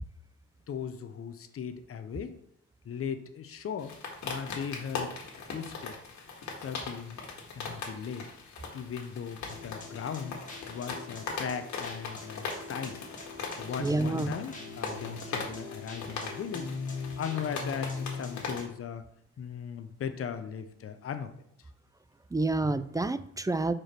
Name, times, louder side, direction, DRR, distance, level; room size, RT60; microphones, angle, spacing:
voice 1, 0.7-2.4 2.8-4.0 4.2-5.2 5.5-6.0 6.6-7.2 7.5-8.3 8.7-10.4 10.7-13.0 13.6-16.7 17.2-19.0 19.4-21.3, left 7 dB, 50° left, 9 dB, 0.8 m, -38 dB
sound 1, 3.8-18.7, left 4 dB, 70° left, 1.8 m, -40 dB
sound 2, 9.5-18.6, left 4 dB, 25° left, 1.5 m, -42 dB
voice 2, 13.8-14.4 22.3-23.7, right 2 dB, 10° right, 13 dB, 0.3 m, -28 dB
5.0 x 4.9 x 4.4 m, 0.72 s
cardioid pair, 90°, 30 cm